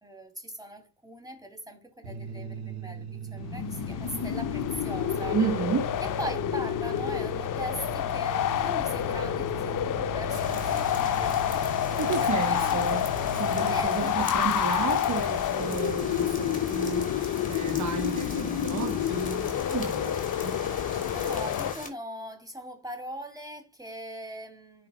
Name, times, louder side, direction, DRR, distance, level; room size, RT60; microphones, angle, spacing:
voice 1, 0.0-5.4 6.0-11.4 11.9-13.1 13.7-14.7 21.1-24.9, equal, 5° right, 3.0 m, -40 dB
sound 1, 2.0-13.8, right 5 dB, 90° right, 1.6 m, -39 dB
sound 2, 3.4-21.7, left 11 dB, 40° left, 0.8 m, -28 dB
voice 2, 5.3-5.9 12.0-13.0 13.3-20.1 20.4-20.6, right 6 dB, 35° right, 1.3 m, -32 dB
sound 3, 10.3-21.9, left 2 dB, 15° left, 3.0 m, -41 dB
10.5 x 4.8 x 2.4 m
hypercardioid pair, 50°, 49 cm